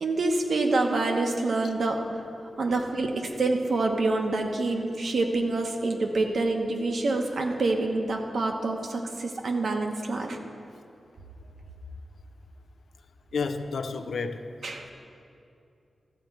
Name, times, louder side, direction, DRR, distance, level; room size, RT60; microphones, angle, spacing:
voice 1, 0.0-2.2 2.6-10.4 14.6-14.9, right 2 dB, 65° right, 3 dB, 1.0 m, -27 dB
voice 2, 13.3-14.4, left 4 dB, 80° left, 8 dB, 0.5 m, -30 dB
13.0 x 4.4 x 8.1 m, 2.6 s
wide cardioid pair, 120°, 0 cm